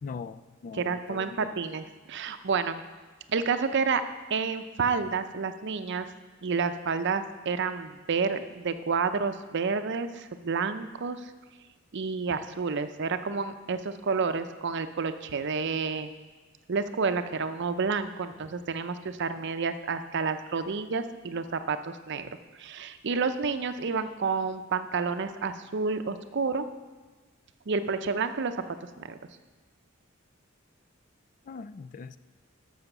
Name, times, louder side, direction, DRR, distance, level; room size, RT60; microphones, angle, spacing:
voice 1, 0.0-1.6 22.2-22.3 31.4-32.2, left 5 dB, 40° left, 14 dB, 0.3 m, -41 dB
voice 2, 0.7-2.8 3.3-4.0 4.3-6.1 6.4-11.3 11.9-16.1 16.7-22.3 22.6-26.7 27.7-29.2, right 5 dB, 60° right, 10 dB, 0.6 m, -30 dB
12.0 x 6.4 x 6.0 m, 1.3 s
head